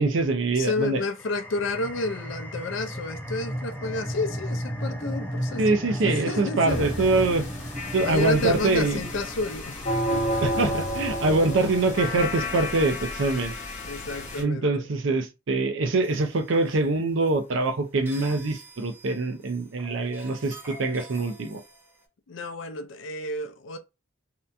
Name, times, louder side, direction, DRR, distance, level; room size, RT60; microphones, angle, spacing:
voice 1, 0.0-1.0 5.6-7.5 7.9-9.0 10.4-13.5 14.4-21.6, right 2 dB, 70° right, 0.5 m, -24 dB
voice 2, 0.5-5.6 6.0-7.3 8.0-9.8 10.1-10.3 11.3-11.4 13.8-14.9 22.3-23.8, left 2 dB, 70° left, 0.4 m, -31 dB
sound 1, 1.0-12.2, equal, 10° left, 0.4 m, -35 dB
sound 2, 6.7-14.4, left 1 dB, 35° left, 0.8 m, -31 dB
sound 3, 16.0-22.0, right 2 dB, 10° right, 0.8 m, -48 dB
2.8 x 2.2 x 2.5 m
head